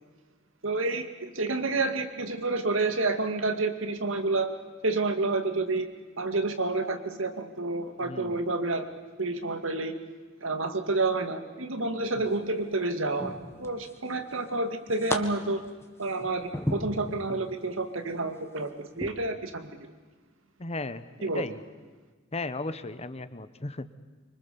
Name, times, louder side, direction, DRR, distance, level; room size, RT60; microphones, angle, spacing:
voice 1, 0.6-4.5 4.8-5.9 6.2-8.9 9.2-9.9 10.4-13.3 13.6-15.6 16.0-18.7 19.0-19.7 21.2-21.4, right 3 dB, 90° right, 7 dB, 2.3 m, -29 dB
voice 2, 8.0-8.4 12.2-12.3 20.6-21.6 22.3-23.9, left 2 dB, 30° left, 13 dB, 1.1 m, -36 dB
sound 1, 12.0-12.5 13.2-14.1 14.4-15.2 15.6-17.5 18.0-18.2 18.9-19.1, left 1 dB, 15° left, 1.6 m, -35 dB
25.5 x 24.5 x 7.0 m, 1.4 s
head